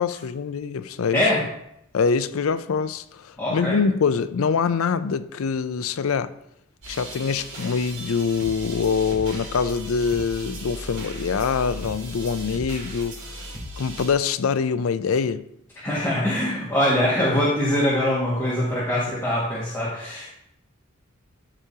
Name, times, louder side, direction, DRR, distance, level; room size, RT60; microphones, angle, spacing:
voice 1, 0.0-1.3 1.9-6.3 6.9-15.5, left 5 dB, 85° left, 0.5 m, -24 dB
voice 2, 3.4-3.8 15.8-20.3, left 1 dB, 15° left, 1.8 m, -23 dB
sound 1, 6.8-14.1, right 1 dB, 60° right, 2.7 m, -36 dB
13.5 x 5.1 x 2.8 m
head